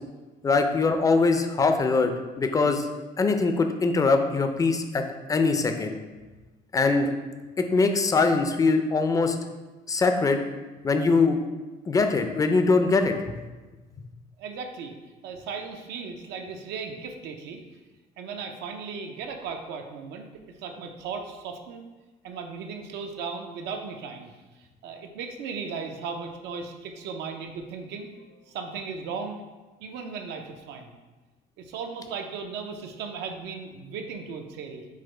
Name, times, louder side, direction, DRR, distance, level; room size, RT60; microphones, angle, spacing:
voice 1, 0.4-2.1 2.4-2.9 3.2-5.0 5.3-6.0 6.7-7.1 7.7-9.4 9.9-10.4 10.8-11.4 11.9-13.2, left 3 dB, 20° left, 6 dB, 0.4 m, -22 dB
voice 2, 14.4-15.0 15.2-17.6 18.2-21.8 22.2-29.4 29.8-31.0 31.6-34.8, right 5 dB, 85° right, 4 dB, 0.5 m, -37 dB
4.8 x 2.1 x 4.3 m, 1.2 s
cardioid pair, 110°, 17 cm